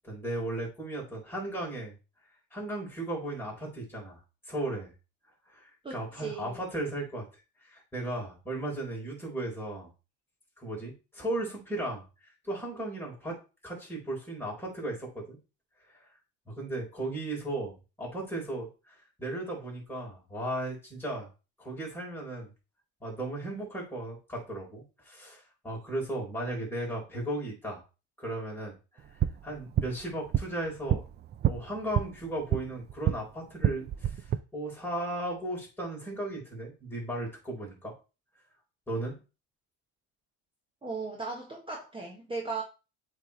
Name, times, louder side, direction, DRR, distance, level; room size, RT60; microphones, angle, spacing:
voice 1, 0.0-2.0 2.5-4.2 4.5-4.9 5.5-7.2 7.6-9.9 10.6-12.0 12.4-13.4 13.6-15.4 16.5-21.3 21.6-22.5 23.0-27.8 28.2-29.0 29.4-31.1 31.4-34.1 34.5-37.9 38.9-39.2, right 1 dB, 5° left, -3 dB, 4.0 m, -36 dB
voice 2, 5.8-6.6 40.8-42.6, right 4 dB, 15° right, -1 dB, 1.3 m, -37 dB
sound 1, 29.0-33.2 33.5-34.4, right 10 dB, 30° right, 0.4 m, -30 dB
8.1 x 3.5 x 4.1 m, 0.31 s
cardioid pair, 130°, 36 cm